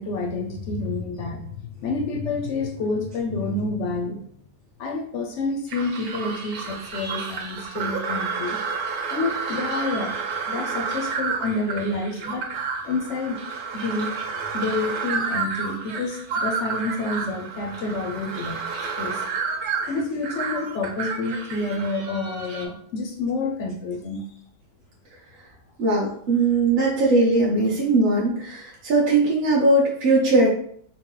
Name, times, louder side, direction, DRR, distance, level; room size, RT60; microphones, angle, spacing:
voice 1, 0.0-4.3 4.8-8.6 9.1-10.1 10.5-12.5 12.8-13.5 13.7-14.2 14.5-19.2 19.9-24.2, left 3 dB, 70° left, 2 dB, 0.7 m, -28 dB
sound 1, 5.7-22.7, right 5 dB, 80° right, 1.3 m, -30 dB
voice 2, 25.8-30.5, right 2 dB, 50° right, -4 dB, 0.8 m, -20 dB
3.9 x 2.0 x 3.8 m, 0.63 s
omnidirectional pair, 1.8 m